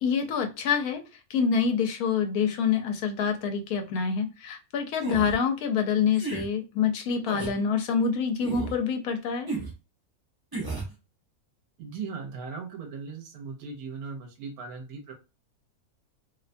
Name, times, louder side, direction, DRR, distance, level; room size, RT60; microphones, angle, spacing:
voice 1, 0.0-1.0 1.3-9.5, left 6 dB, 85° left, 5 dB, 1.1 m, -26 dB
sound 1, 5.0-5.4 6.1-6.5 7.3-7.6 8.4-8.8 9.5-9.7 10.5-10.9, right 3 dB, 35° right, 0.3 m, -33 dB
voice 2, 11.8-15.1, right 5 dB, 85° right, 2 dB, 1.1 m, -38 dB
2.7 x 2.1 x 2.5 m, 0.28 s
omnidirectional pair, 1.5 m